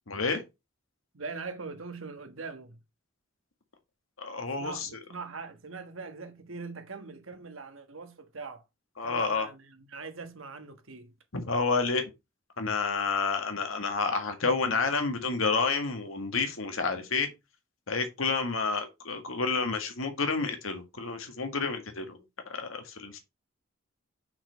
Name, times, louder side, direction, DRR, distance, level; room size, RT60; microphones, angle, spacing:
voice 1, 0.1-0.4 4.2-4.9 9.0-9.5 11.3-12.0 12.6-17.3 17.9-22.2 22.5-23.2, left 4 dB, 90° left, 1.7 m, -29 dB
voice 2, 1.1-2.8 4.6-8.6 9.0-11.1, right 4 dB, 85° right, 1.3 m, -42 dB
5.8 x 5.1 x 4.5 m
head